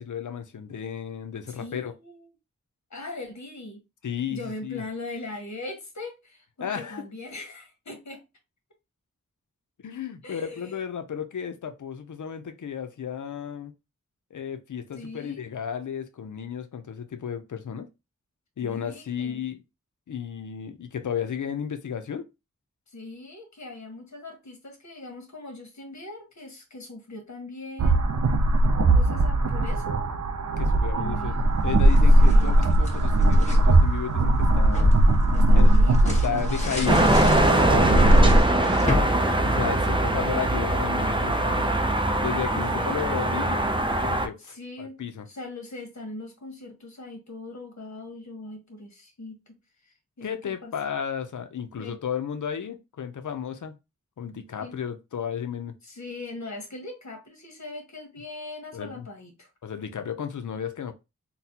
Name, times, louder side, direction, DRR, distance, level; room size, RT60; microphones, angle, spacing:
voice 1, 0.0-1.9 4.0-4.8 6.6-7.0 9.8-13.7 14.3-17.9 18.6-19.6 20.1-22.3 30.6-31.3 31.6-35.0 35.6-35.7 36.1-38.1 39.4-41.7 42.2-43.6 44.0-45.3 50.2-53.8 54.2-55.7 58.7-59.1 59.6-60.9, left 8 dB, 90° left, 0.5 m, -33 dB
voice 2, 1.5-2.3 2.9-3.8 4.3-8.2 10.2-10.8 14.9-15.4 18.6-19.4 22.9-28.1 28.9-30.0 30.9-31.4 32.2-32.5 35.3-36.9 37.5-39.2 39.8-40.4 42.5-43.0 44.4-45.0 45.3-49.5 50.2-50.7 51.8-52.0 54.6-54.8 55.8-59.5, left 2 dB, 70° left, 1.2 m, -40 dB
sound 1, 27.8-38.4, right 1 dB, 65° right, 0.5 m, -19 dB
sound 2, 31.7-33.7 34.2-40.2, left 2 dB, 25° left, 1.2 m, -32 dB
sound 3, 36.9-44.3, right 1 dB, 15° right, 0.5 m, -22 dB
3.9 x 2.2 x 2.8 m
wide cardioid pair, 45°, 29 cm